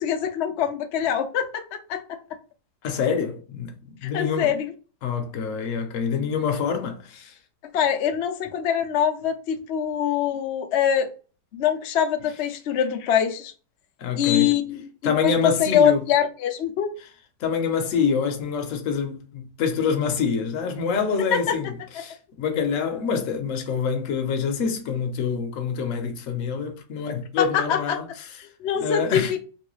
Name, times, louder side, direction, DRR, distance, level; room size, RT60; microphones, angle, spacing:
voice 1, 0.0-2.0 4.0-4.7 7.7-11.1 11.5-13.5 14.2-16.9 21.3-21.6 27.4-28.0 28.4-29.4, left 8 dB, 85° left, 0.6 m, -24 dB
voice 2, 2.8-3.7 4.0-4.5 5.0-7.4 14.0-14.6 15.0-16.0 17.4-28.1 28.8-29.3, left 6 dB, 60° left, 0.9 m, -26 dB
3.1 x 3.0 x 3.0 m
omnidirectional pair, 1.9 m